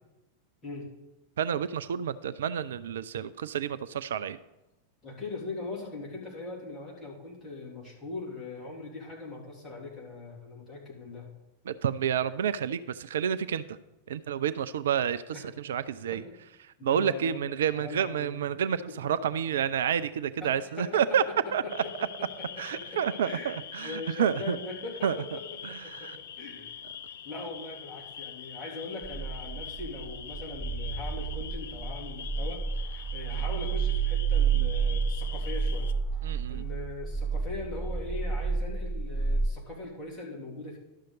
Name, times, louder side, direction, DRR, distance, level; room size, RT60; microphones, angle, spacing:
voice 1, 1.4-4.4 11.7-13.8 14.1-16.2 16.8-21.2 21.5-21.6 22.6-24.6 25.0-25.2 25.6-26.2 36.2-36.6, right 8 dB, 60° right, 14 dB, 0.3 m, -29 dB
voice 2, 5.0-11.3 15.3-15.4 16.1-16.2 16.8-17.4 17.7-18.5 18.9-19.0 20.4-21.9 22.2-22.3 22.5-23.5 23.8-26.7 27.2-35.9 36.5-40.8, left 3 dB, 20° left, -3 dB, 3.2 m, -40 dB
sound 1, 21.7-35.9, left 9 dB, 60° left, 0.5 m, -44 dB
sound 2, 29.0-39.5, right 5 dB, 15° right, 0.7 m, -30 dB
12.0 x 6.4 x 4.0 m, 0.98 s
figure-of-eight pair, 90°, 0 cm